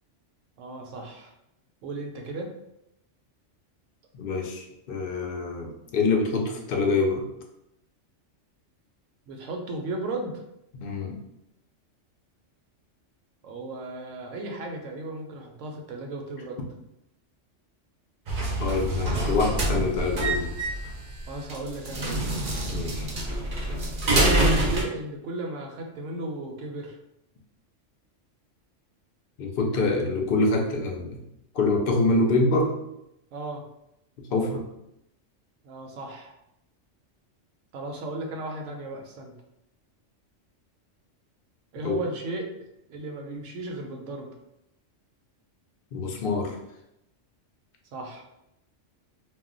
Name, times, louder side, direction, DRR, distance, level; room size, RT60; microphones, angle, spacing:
voice 1, 0.6-1.3 1.8-2.5 9.3-10.4 13.4-16.6 21.3-22.3 24.1-27.0 33.3-33.6 35.6-36.3 37.7-39.3 41.7-42.5 42.9-44.3 47.9-48.2, right 2 dB, 80° right, 2 dB, 0.9 m, -35 dB
voice 2, 4.1-7.3 10.7-11.2 18.6-20.5 22.6-23.1 29.4-31.3 31.5-32.7 34.2-34.7 41.8-42.0 45.9-46.6, left 3 dB, 60° left, 2 dB, 0.6 m, -26 dB
sound 1, 18.3-24.8, right 1 dB, 50° right, 0.7 m, -26 dB
2.3 x 2.1 x 3.7 m, 0.83 s
omnidirectional pair, 1.3 m